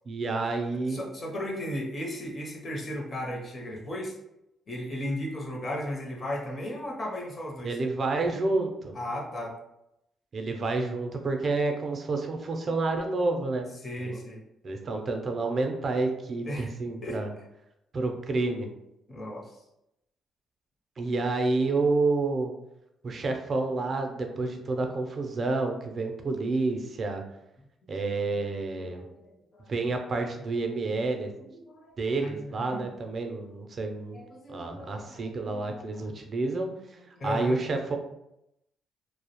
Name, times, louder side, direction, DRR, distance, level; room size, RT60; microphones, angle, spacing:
voice 1, 0.1-1.0 7.6-8.9 10.3-13.7 14.0-14.1 14.6-17.3 17.9-18.7 21.0-22.5 23.0-27.2 27.9-29.1 29.7-31.3 32.0-34.2 34.5-36.7 37.2-38.0, right 3 dB, 45° right, 4 dB, 0.4 m, -29 dB
voice 2, 0.9-4.2 4.7-7.8 8.9-9.5 13.8-14.4 16.4-16.7 17.0-17.2 19.1-19.6 28.2-28.3 28.7-29.9 31.4-32.8 34.1-36.1 36.4-36.5 37.1-37.6, left 1 dB, 40° left, 0 dB, 0.6 m, -36 dB
2.3 x 2.0 x 2.9 m, 0.84 s
cardioid pair, 90°, 0 cm